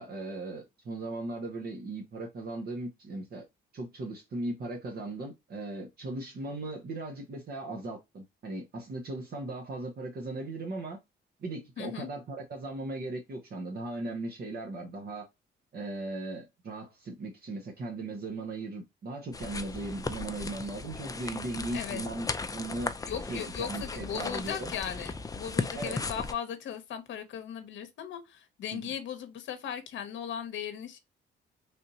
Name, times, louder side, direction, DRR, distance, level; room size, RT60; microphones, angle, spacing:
voice 1, 0.0-3.4 3.7-11.0 11.4-15.3 15.7-22.3 22.5-22.9 23.3-24.7 25.7-26.0 28.7-28.9, right 2 dB, 50° right, 0.9 m, -38 dB
voice 2, 11.8-12.1 21.7-22.1 23.0-31.0, left 8 dB, 70° left, 0.8 m, -37 dB
sound 1, 19.3-26.3, left 3 dB, 20° left, 0.4 m, -36 dB
3.3 x 2.7 x 2.7 m
cardioid pair, 90°, 20 cm